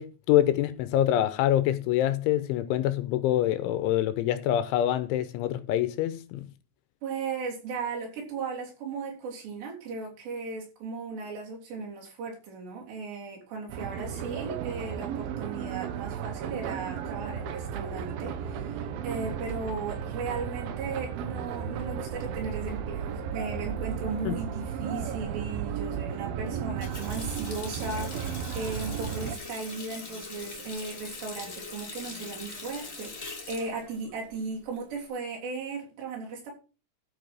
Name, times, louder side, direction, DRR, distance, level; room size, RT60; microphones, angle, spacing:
voice 1, 0.0-6.5 24.3-24.4, left 12 dB, 80° left, 3.0 m, -25 dB
voice 2, 7.0-36.5, right 4 dB, 60° right, 5.4 m, -36 dB
sound 1, 13.7-29.4, right 8 dB, 75° right, 2.2 m, -34 dB
Water tap faucet, 26.6-35.1, left 3 dB, 35° left, 1.2 m, -42 dB
13.0 x 5.6 x 6.2 m
omnidirectional pair, 5.7 m